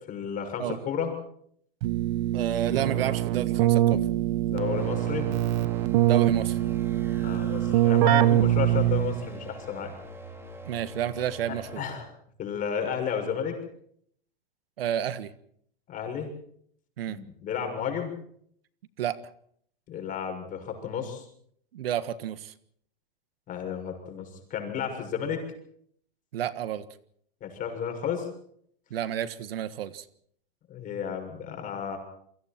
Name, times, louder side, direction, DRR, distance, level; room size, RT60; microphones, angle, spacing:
voice 1, 0.1-1.1 4.5-5.3 7.1-9.9 11.5-12.1 12.4-13.6 15.9-16.3 17.1-18.1 19.9-21.2 23.5-25.4 27.4-28.3 30.7-32.0, left 7 dB, 25° left, 5 dB, 6.7 m, -32 dB
Keyboard (musical), 1.8-9.4, right 13 dB, 50° right, 1.2 m, -24 dB
voice 2, 2.3-4.0 6.0-6.6 10.7-11.8 14.8-15.3 17.0-17.2 19.0-19.2 21.7-22.5 26.3-26.8 28.9-30.0, right 10 dB, 75° right, 13 dB, 1.6 m, -30 dB
sound 1, 4.8-11.8, right 1 dB, 10° right, 3.7 m, -45 dB
28.5 x 23.5 x 4.5 m, 0.65 s
hypercardioid pair, 135°, 29 cm